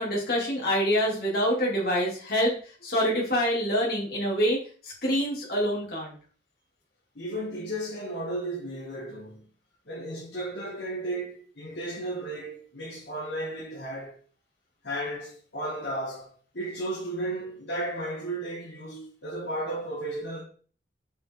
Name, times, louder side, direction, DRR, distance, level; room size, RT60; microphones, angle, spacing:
voice 1, 0.0-2.5 2.8-4.6 4.8-6.2, equal, 55° left, 3.6 m, -26 dB
voice 2, 7.2-9.4 9.9-14.2 14.8-20.4, right 1 dB, 75° left, 2.2 m, -34 dB
7.7 x 5.4 x 4.0 m
head